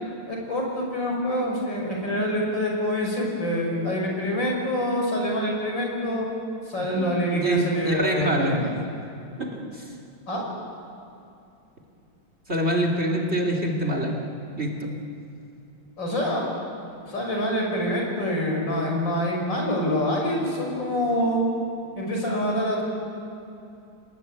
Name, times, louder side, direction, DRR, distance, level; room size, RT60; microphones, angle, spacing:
voice 1, 0.3-6.3 6.7-8.7 10.3-10.4 16.0-16.5 17.1-21.5 22.0-22.8, equal, 60° left, 0 dB, 6.3 m, -26 dB
voice 2, 7.0-8.6 9.4-9.9 12.5-14.1 14.6-14.9, right 1 dB, 30° right, 2 dB, 2.8 m, -26 dB
29.5 x 19.0 x 9.0 m, 2.6 s
omnidirectional pair, 2.2 m